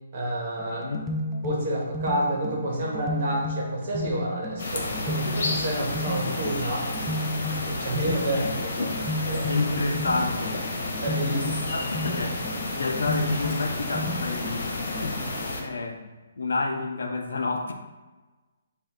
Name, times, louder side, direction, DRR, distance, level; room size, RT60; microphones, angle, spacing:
voice 1, 0.1-0.9 1.4-6.9 7.7-9.0 9.3-9.5 11.0-11.9, right 1 dB, 50° right, -2 dB, 1.3 m, -29 dB
sound 1, 0.6-15.5, left 1 dB, ahead, 0.4 m, -33 dB
voice 2, 0.7-1.1 8.3-8.4 8.8-10.6 10.8-11.0 11.3-12.4 12.7-15.3 15.6-16.0 16.4-17.7, left 3 dB, 85° left, 4 dB, 0.6 m, -30 dB
sound 2, 4.6-15.6, left 2 dB, 65° left, 1.1 m, -31 dB
5.3 x 2.6 x 3.6 m, 1.2 s
hypercardioid pair, 160°, 0 cm